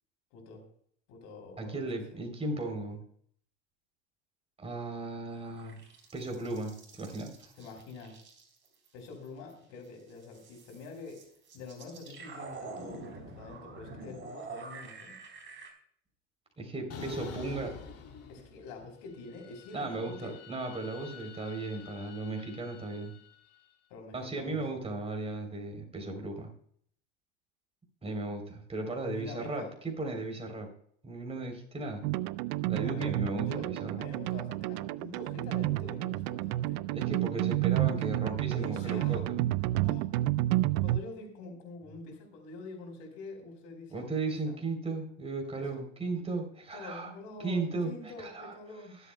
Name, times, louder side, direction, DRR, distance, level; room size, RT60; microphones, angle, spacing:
voice 1, 0.3-0.6 1.1-1.9 7.6-8.2 8.9-11.2 11.5-15.2 17.6-17.7 18.3-20.4 23.9-24.8 29.0-29.7 32.8-33.1 33.4-33.7 34.0-36.8 37.8-38.0 38.5-39.2 39.8-40.1 40.8-44.6 45.5-45.8 46.7-49.0, left 3 dB, 65° left, 3 dB, 4.6 m, -46 dB
voice 2, 1.6-3.0 4.6-5.8 6.1-7.5 16.6-17.7 19.7-23.1 24.1-26.5 28.0-30.7 31.0-32.0 32.7-34.0 36.9-39.5 43.9-47.1 47.4-47.9 48.2-48.5, right 2 dB, 15° right, 3 dB, 3.4 m, -36 dB
sound 1, 5.3-9.5 9.8-15.7, right 3 dB, 30° right, 3.8 m, -47 dB
sound 2, 16.9-18.9 19.2-23.5, left 7 dB, 40° left, 2.6 m, -47 dB
sound 3, 32.0-41.0, right 16 dB, 60° right, 0.6 m, -30 dB
22.5 x 8.2 x 2.2 m, 0.62 s
hypercardioid pair, 85°, 36 cm